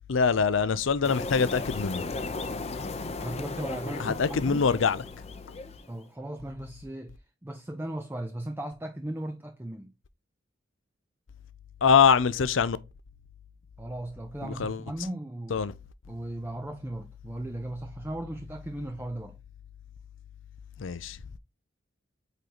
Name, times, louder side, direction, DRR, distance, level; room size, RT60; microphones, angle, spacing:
voice 1, 0.1-2.0 4.0-5.0 11.8-12.8 14.4-14.8 15.5-15.7 20.8-21.2, left 6 dB, 70° left, 0.5 m, -24 dB
sound 1, 1.0-5.9, left 3 dB, 35° left, 0.7 m, -36 dB
voice 2, 3.2-4.7 5.9-9.9 13.8-15.6 16.1-19.4, right 1 dB, 10° right, 0.5 m, -37 dB
8.1 x 3.9 x 2.9 m
head